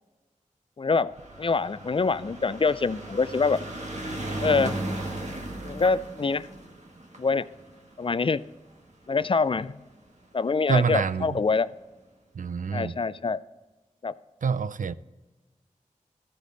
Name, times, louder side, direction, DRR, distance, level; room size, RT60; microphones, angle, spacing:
voice 1, 0.8-3.6 4.4-4.8 5.6-6.5 7.2-7.5 8.0-8.4 9.1-9.8 10.3-11.7 12.7-13.4 14.0-14.2, left 4 dB, 40° left, 0.4 m, -25 dB
sound 1, 1.1-9.6 10.4-10.5 10.7-10.8 11.0-11.1, right 1 dB, 60° right, 1.5 m, -36 dB
voice 2, 10.7-11.4 12.3-12.9 14.4-14.9, right 5 dB, 75° right, 0.4 m, -26 dB
13.5 x 5.0 x 4.0 m
wide cardioid pair, 45°, 14 cm